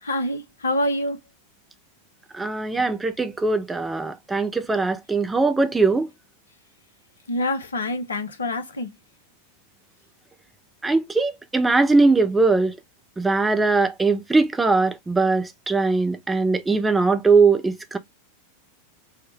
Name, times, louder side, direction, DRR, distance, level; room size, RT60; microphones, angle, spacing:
voice 1, 0.0-1.2 2.7-2.8 7.3-8.9, left 1 dB, 70° left, 0.7 m, -26 dB
voice 2, 2.3-6.1 10.8-12.7 13.2-18.0, right 3 dB, 10° right, 0.5 m, -20 dB
3.5 x 2.1 x 2.7 m
figure-of-eight pair, 90°, 0 cm